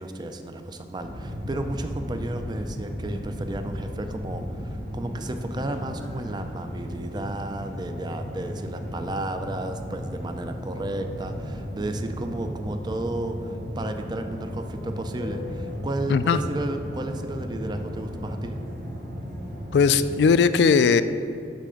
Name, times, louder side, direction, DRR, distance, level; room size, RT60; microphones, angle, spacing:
voice 1, 0.0-18.6, right 1 dB, 25° right, 7 dB, 0.4 m, -33 dB
sound 1, 1.0-20.2, equal, 50° right, 2.0 m, -35 dB
voice 2, 19.7-21.0, left 5 dB, 70° left, 13 dB, 0.3 m, -18 dB
9.8 x 3.3 x 6.3 m, 2.5 s
head